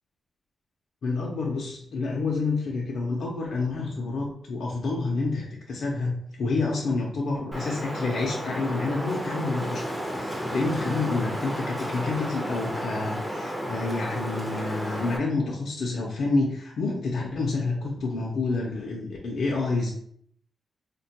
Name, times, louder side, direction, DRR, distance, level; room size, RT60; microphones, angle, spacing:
voice 1, 1.0-19.9, left 3 dB, 65° left, -2 dB, 0.5 m, -28 dB
Wind, 7.5-15.2, equal, ahead, 0.5 m, -32 dB
3.3 x 2.1 x 2.8 m, 0.67 s
wide cardioid pair, 135°, 0 cm